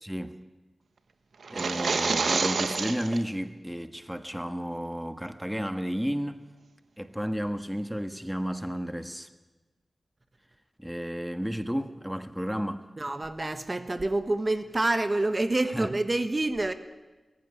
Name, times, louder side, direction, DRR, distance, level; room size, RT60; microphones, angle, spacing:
voice 1, 0.0-0.4 1.5-6.4 7.0-9.3 10.8-12.9 15.7-15.9, equal, 5° right, 1.5 m, -32 dB
sound 1, 1.4-3.2, right 4 dB, 85° right, 1.4 m, -27 dB
voice 2, 13.0-16.7, right 2 dB, 35° right, 1.4 m, -27 dB
21.0 x 15.5 x 9.9 m
cardioid pair, 45°, 0 cm